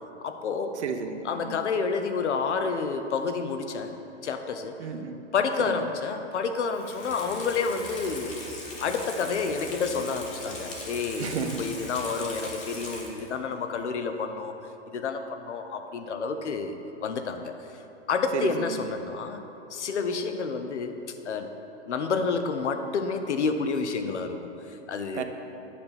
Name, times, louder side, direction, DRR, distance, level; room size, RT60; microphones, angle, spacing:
voice 1, 0.2-0.8 1.2-4.8 5.3-8.4 8.8-14.5 14.9-17.5 18.1-19.4 19.7-21.5 21.8-25.2, left 5 dB, 80° left, 7 dB, 0.8 m, -29 dB
voice 2, 0.8-1.7 4.8-5.2 5.7-5.8 11.2-11.6 18.3-18.9 25.1-25.2, right 6 dB, 75° right, 6 dB, 0.8 m, -33 dB
Water tap faucet / Sink (filling or washing), 6.7-13.4 13.8-13.9, left 1 dB, 20° left, 1.3 m, -39 dB
8.5 x 4.2 x 6.9 m, 3.0 s
hypercardioid pair, 140°, 34 cm